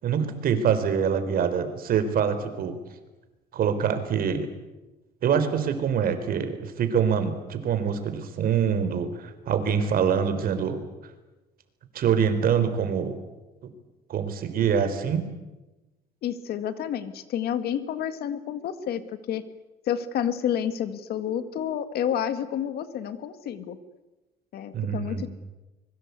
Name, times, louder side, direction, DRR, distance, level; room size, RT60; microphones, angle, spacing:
voice 1, 0.0-2.8 3.5-4.5 5.2-10.9 11.9-13.2 14.1-15.2 24.7-25.3, right 7 dB, 60° right, 9 dB, 4.0 m, -25 dB
voice 2, 16.2-19.0 19.3-19.4 19.9-23.8 24.5-25.3, left 9 dB, 70° left, 11 dB, 2.1 m, -29 dB
25.0 x 22.5 x 8.3 m, 1.1 s
cardioid pair, 110°, 17 cm